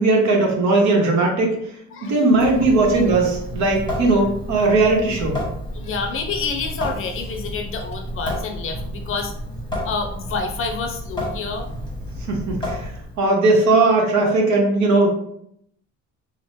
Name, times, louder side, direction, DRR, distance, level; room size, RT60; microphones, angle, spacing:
voice 1, 0.0-1.5 2.0-5.4 12.3-12.9 13.2-15.1, right 2 dB, 70° right, 0 dB, 0.9 m, -18 dB
Water tap faucet / Sink (filling or washing) / Drip, 2.3-13.3, left 1 dB, 15° left, 0.9 m, -31 dB
voice 2, 5.7-9.3 9.8-11.7, left 4 dB, 45° left, 4 dB, 0.5 m, -28 dB
3.0 x 2.1 x 3.1 m, 0.72 s
cardioid pair, 125°, 30 cm